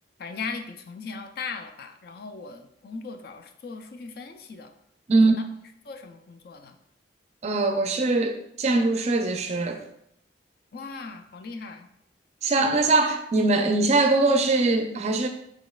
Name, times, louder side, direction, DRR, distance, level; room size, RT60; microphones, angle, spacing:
voice 1, 0.2-4.7 5.2-5.4 5.9-6.8 10.7-11.9, left 4 dB, 55° left, 7 dB, 0.4 m, -38 dB
voice 2, 5.1-5.4 7.4-9.8 12.4-15.3, right 3 dB, 35° right, 6 dB, 0.4 m, -22 dB
5.0 x 4.2 x 2.3 m, 0.75 s
head